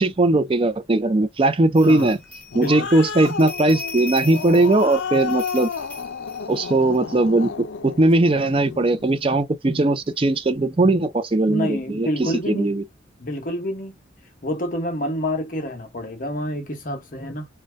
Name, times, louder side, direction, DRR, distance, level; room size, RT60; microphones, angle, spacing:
voice 1, 0.0-2.2 2.5-5.7 6.5-12.8, right 2 dB, 30° right, 0.4 m, -19 dB
sound 1, 1.7-7.0, left 3 dB, 10° left, 0.7 m, -38 dB
voice 2, 1.8-2.1 2.5-2.9 11.5-12.7 13.2-13.9 14.4-17.5, equal, 45° left, 0.9 m, -28 dB
Growling, 2.2-9.0, left 6 dB, 70° left, 0.4 m, -32 dB
2.7 x 2.2 x 3.2 m
head